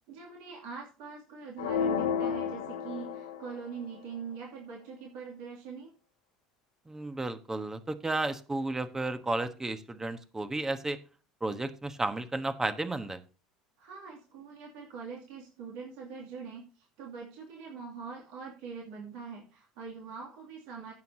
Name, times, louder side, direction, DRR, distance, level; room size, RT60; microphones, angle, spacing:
voice 1, 0.1-5.9 13.8-20.9, right 5 dB, 60° right, -2 dB, 2.6 m, -43 dB
sound 1, 1.6-3.7, left 7 dB, 75° left, 1.5 m, -31 dB
voice 2, 6.9-11.0 11.4-13.2, right 2 dB, 15° right, 10 dB, 1.3 m, -33 dB
17.0 x 7.0 x 2.8 m, 0.36 s
figure-of-eight pair, 65°, 3 cm